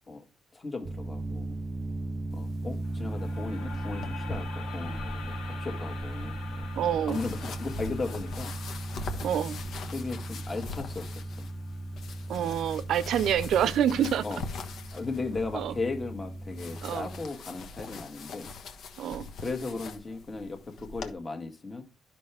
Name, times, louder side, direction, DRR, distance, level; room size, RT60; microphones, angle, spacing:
voice 1, 0.5-1.6 2.3-6.7 7.1-8.5 9.9-11.5 14.2-14.4 14.9-18.5 19.4-21.8, left 3 dB, 25° left, 1.7 m, -36 dB
sound 1, 0.8-17.2, right 2 dB, 30° right, 0.6 m, -37 dB
sound 2, 2.3-21.1, left 3 dB, 70° left, 1.3 m, -43 dB
sound 3, 2.8-13.0, left 6 dB, 85° left, 4.3 m, -47 dB
voice 2, 6.8-7.2 9.2-9.6 12.3-14.3 15.5-15.7 16.8-17.1 19.0-19.3, right 9 dB, 75° right, 0.6 m, -27 dB
10.5 x 5.9 x 3.4 m
cardioid pair, 90°, 0 cm